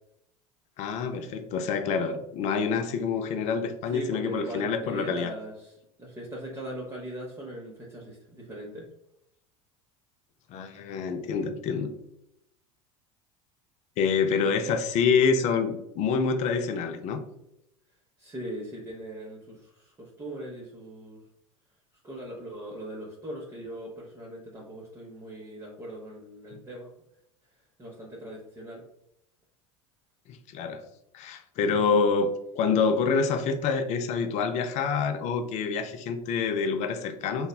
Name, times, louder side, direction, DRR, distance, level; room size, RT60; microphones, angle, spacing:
voice 1, 0.8-5.3 10.5-11.9 14.0-17.2 26.5-26.6 30.3-30.8 31.1-32.3 32.6-37.5, left 5 dB, 45° left, 8 dB, 0.4 m, -27 dB
voice 2, 3.9-8.9 14.4-14.7 18.2-21.2 22.0-26.9 27.8-28.8 31.7-32.1, right 1 dB, 15° right, -4 dB, 0.6 m, -40 dB
3.1 x 2.0 x 2.3 m, 0.80 s
hypercardioid pair, 90°, 17 cm